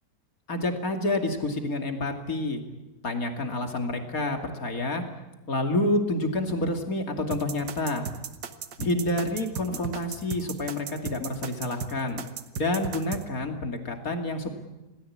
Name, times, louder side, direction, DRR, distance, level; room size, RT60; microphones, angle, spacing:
voice 1, 0.5-2.6 3.0-5.0 5.5-8.1 8.8-12.2 12.6-14.5, left 2 dB, 50° left, 4 dB, 3.0 m, -28 dB
sound 1, 7.3-13.2, right 7 dB, 90° right, 1.9 m, -36 dB
27.0 x 19.0 x 8.7 m, 1.1 s
omnidirectional pair, 1.9 m